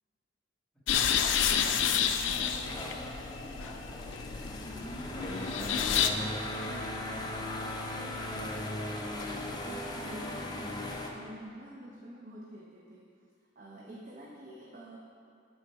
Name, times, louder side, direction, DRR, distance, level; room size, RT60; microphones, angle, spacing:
sound 1, 0.9-6.1, left 8 dB, 85° left, 0.4 m, -30 dB
voice 1, 0.9-1.4 2.2-4.4 4.9-7.3, equal, ahead, -9 dB, 2.0 m, -46 dB
voice 2, 1.5-2.1 7.9-13.1 13.6-15.0, equal, 45° right, -3 dB, 0.7 m, -48 dB
sound 2, 2.3-11.1, left 1 dB, 20° left, 0.6 m, -38 dB
11.0 x 4.1 x 4.6 m, 2.3 s
head